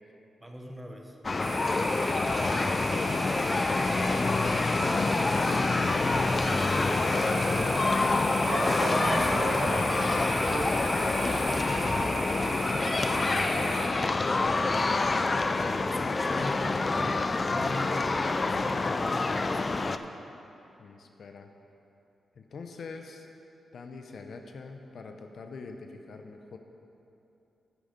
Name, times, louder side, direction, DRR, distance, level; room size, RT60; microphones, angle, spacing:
voice 1, 0.4-1.2 8.9-9.5 11.4-12.1 12.7-13.6 15.8-20.0, equal, 10° right, 2 dB, 1.0 m, -42 dB
sound 1, 1.2-20.0, left 3 dB, 30° left, 0.4 m, -27 dB
sound 2, 1.4-13.9, right 2 dB, 50° right, 1.8 m, -34 dB
voice 2, 2.4-6.0 6.8-10.1 11.6-11.8 12.6-12.9 13.9-14.6 20.8-21.5 22.4-23.3 23.7-26.6, left 4 dB, 60° left, 5 dB, 0.7 m, -43 dB
9.7 x 9.2 x 5.1 m, 2.8 s
wide cardioid pair, 125°, 0 cm